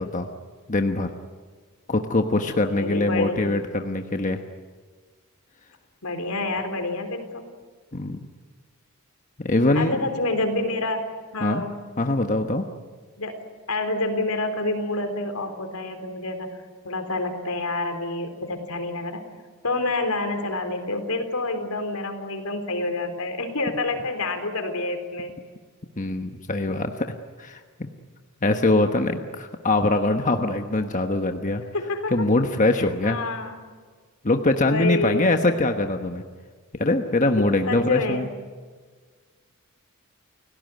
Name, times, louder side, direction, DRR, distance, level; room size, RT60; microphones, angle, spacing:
voice 1, 0.7-1.1 1.9-4.4 7.9-8.3 9.4-10.0 11.4-11.6 12.0-12.7 26.0-27.1 27.4-27.6 28.4-31.6 32.1-33.2 34.2-36.2 36.8-38.3, left 2 dB, 35° left, 5 dB, 1.2 m, -22 dB
voice 2, 2.7-3.4 6.0-7.5 9.7-11.8 13.2-13.4 13.7-16.6 16.8-19.2 19.6-25.3 31.7-32.3 33.0-33.7 34.6-35.2 37.7-38.3, left 2 dB, 85° left, 7 dB, 3.9 m, -28 dB
29.5 x 18.0 x 9.3 m, 1.5 s
head